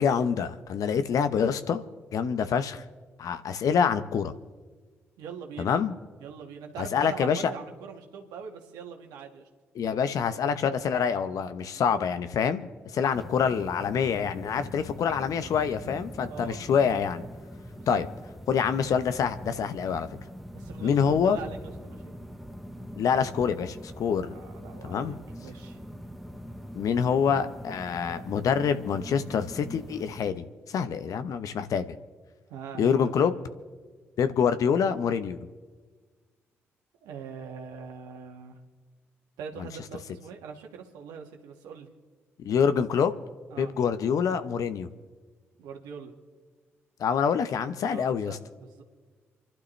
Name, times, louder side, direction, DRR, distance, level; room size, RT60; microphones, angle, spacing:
voice 1, 0.0-1.8 2.1-2.8 3.2-4.3 5.6-5.9 6.8-7.5 9.8-12.7 12.9-17.2 17.9-18.1 18.5-20.1 20.8-21.4 23.0-24.3 24.8-25.2 26.7-32.0 32.8-33.3 34.2-35.4 42.4-43.1 43.6-44.9 47.0-48.4, left 7 dB, 60° left, 11 dB, 1.0 m, -26 dB
voice 2, 5.2-5.8 6.2-9.5 13.0-13.2 16.3-16.6 17.7-18.0 20.5-21.6 21.8-22.1 24.2-25.8 32.5-33.1 37.0-38.6 39.4-41.9 43.5-43.7 45.6-46.1 47.9-48.8, right 6 dB, 75° right, 2 dB, 1.9 m, -42 dB
sound 1, 13.1-30.3, equal, ahead, 1.3 m, -43 dB
29.0 x 12.0 x 3.4 m, 1.4 s
hypercardioid pair, 40°, 7 cm